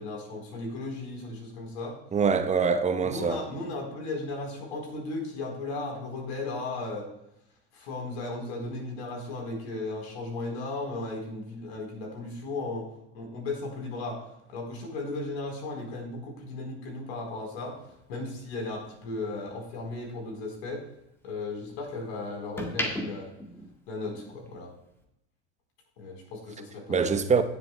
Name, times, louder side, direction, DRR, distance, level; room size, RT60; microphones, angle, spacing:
voice 1, 0.0-2.0 3.0-7.1 7.7-12.9 13.1-14.2 14.5-17.8 18.1-20.8 21.2-23.3 23.9-24.7 26.0-27.1, left 2 dB, 65° left, 4.1 m, -36 dB
voice 2, 2.1-3.4 26.9-27.4, right 5 dB, 20° right, 0.9 m, -24 dB
sound 1, 17.7-20.1 20.5-21.9 22.3-24.5 24.8-25.0, equal, 5° left, 1.6 m, -37 dB
17.0 x 7.9 x 2.2 m
figure-of-eight pair, 80°, 36 cm